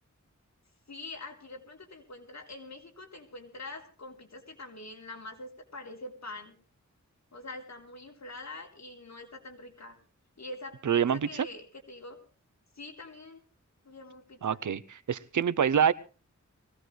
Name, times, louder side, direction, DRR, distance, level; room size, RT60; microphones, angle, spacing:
voice 1, 0.9-6.6 7.3-10.0 10.4-12.2 12.7-13.4 13.9-14.6, left 2 dB, 65° left, 2 dB, 3.5 m, -45 dB
voice 2, 10.8-11.5 14.4-15.9, right 8 dB, 85° right, 18 dB, 0.7 m, -26 dB
22.0 x 17.0 x 3.2 m, 0.34 s
wide cardioid pair, 70°, 30 cm